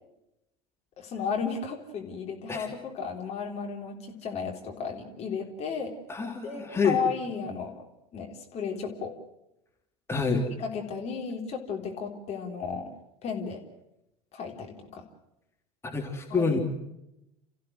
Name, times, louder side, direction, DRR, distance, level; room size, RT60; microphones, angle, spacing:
voice 1, 1.0-5.9 6.4-7.7 8.1-9.1 10.6-12.9 13.2-13.6 14.3-15.0 16.3-16.6, left 6 dB, 35° left, 2 dB, 3.7 m, -34 dB
voice 2, 6.1-7.0 10.1-10.5 15.8-16.6, left 4 dB, 15° left, 1 dB, 3.2 m, -27 dB
30.0 x 15.0 x 7.8 m, 0.87 s
figure-of-eight pair, 75°, 18 cm